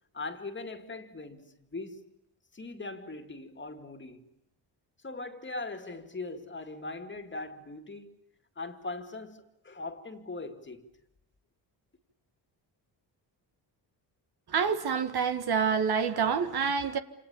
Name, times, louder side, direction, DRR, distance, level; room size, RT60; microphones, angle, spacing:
voice 1, 0.1-2.1 2.5-4.3 5.0-8.2 8.6-10.9, left 3 dB, 25° left, 2.3 m, -40 dB
voice 2, 14.5-17.0, right 6 dB, 60° right, 1.8 m, -27 dB
27.5 x 27.5 x 7.1 m
cardioid pair, 95°, 43 cm